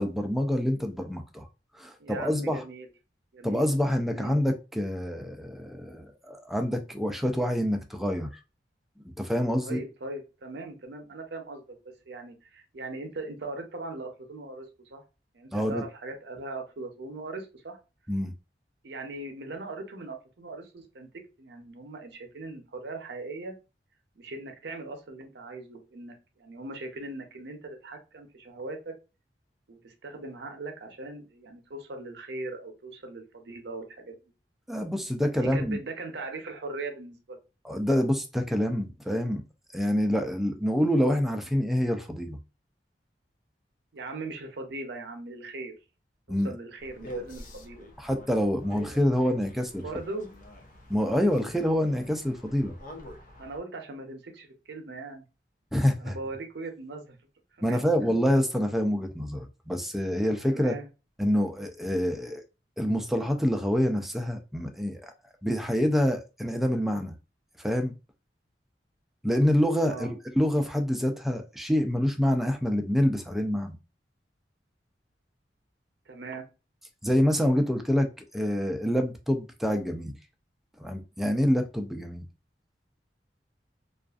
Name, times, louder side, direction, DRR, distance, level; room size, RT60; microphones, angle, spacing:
voice 1, 0.0-1.5 1.8-2.6 3.4-8.4 9.2-9.8 15.5-15.8 18.1-18.3 34.7-35.8 37.6-39.4 39.7-42.4 46.3-46.5 48.0-49.8 50.9-52.7 55.7-56.2 57.6-60.8 61.2-62.4 62.8-65.1 65.4-67.1 67.6-67.9 69.2-73.8 77.0-80.1 80.8-82.2, equal, ahead, 0.4 m, -26 dB
voice 2, 2.0-2.9 3.3-3.7 4.1-4.3 9.6-11.8 12.1-15.0 15.3-17.8 18.8-21.1 21.4-23.5 24.2-29.0 29.7-34.2 35.3-37.4 43.9-45.7 46.3-47.9 49.8-50.3 53.4-55.3 56.0-57.2 57.7-58.1 60.4-60.9 69.8-70.1 76.1-76.5, right 2 dB, 70° right, 0.6 m, -39 dB
sound 1, 46.8-53.6, equal, 50° left, 0.5 m, -46 dB
2.4 x 2.4 x 2.3 m
head